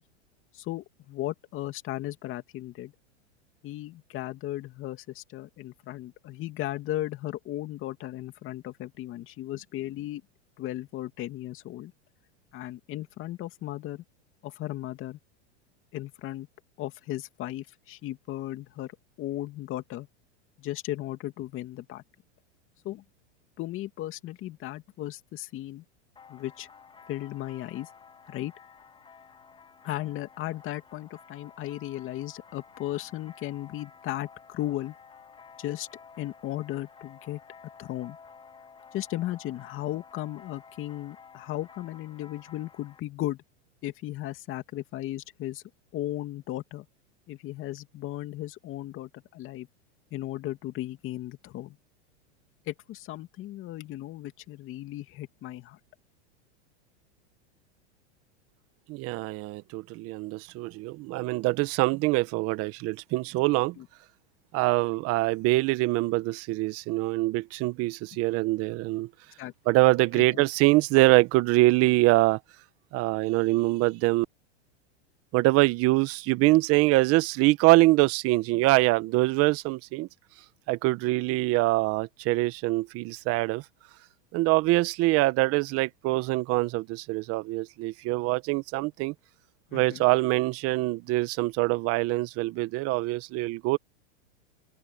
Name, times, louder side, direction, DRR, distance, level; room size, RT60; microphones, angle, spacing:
voice 1, 0.5-2.9 3.6-10.2 10.6-11.9 12.5-14.0 14.4-15.2 15.9-16.5 16.8-18.9 19.2-20.1 20.6-22.0 22.8-23.0 23.6-25.8 26.3-26.7 27.1-27.9 28.3-28.5 29.8-34.9 35.6-35.9 36.2-37.4 37.8-38.2 38.9-43.4 43.8-45.6 45.9-46.9 47.3-49.7 50.1-51.8 52.7-55.8 63.8-63.9 69.4-69.5 70.1-70.4 89.7-90.0, left 15 dB, 35° left, 2.6 m, -36 dB
sound 1, 26.2-43.0, left 6 dB, 15° left, 3.2 m, -52 dB
voice 2, 58.9-63.7 64.5-69.1 69.6-72.4 72.9-74.2 75.3-80.1 80.7-83.6 84.3-89.1 89.7-93.8, right 20 dB, 45° right, 1.4 m, -24 dB
open air
supercardioid pair, 130°, 34 cm